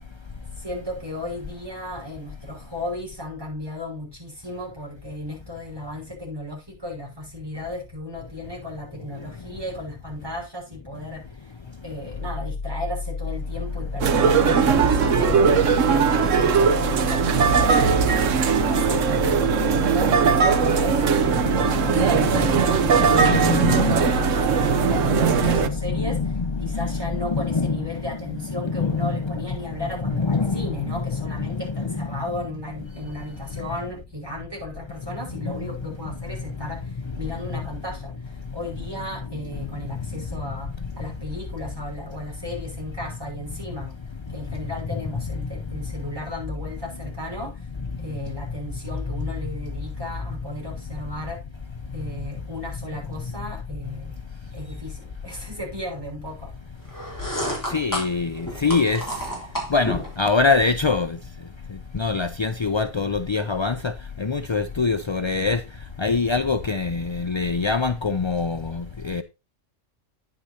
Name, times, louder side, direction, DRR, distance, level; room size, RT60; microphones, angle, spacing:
voice 1, 0.6-11.5 11.8-18.4 18.7-44.0 44.3-47.7 48.0-51.4 51.9-54.3 54.5-56.5, left 1 dB, 15° right, 6.1 m, -35 dB
sound 1, 12.1-27.9, left 4 dB, 75° left, 3.4 m, -32 dB
sound 2, 14.0-25.7, right 6 dB, 70° right, 1.2 m, -20 dB
voice 2, 19.5-19.8 20.5-20.7 21.4-22.0 22.3-24.0 24.4-28.0 28.6-29.8 30.0-30.6 31.4-32.2 38.4-38.5 39.9-40.0 40.3-40.4 44.3-44.6 47.9-48.1 57.6-59.3 59.7-69.2, left 4 dB, 45° left, 0.3 m, -25 dB
sound 3, 56.9-60.2, equal, 15° left, 4.2 m, -30 dB
9.9 x 9.5 x 2.8 m
omnidirectional pair, 1.4 m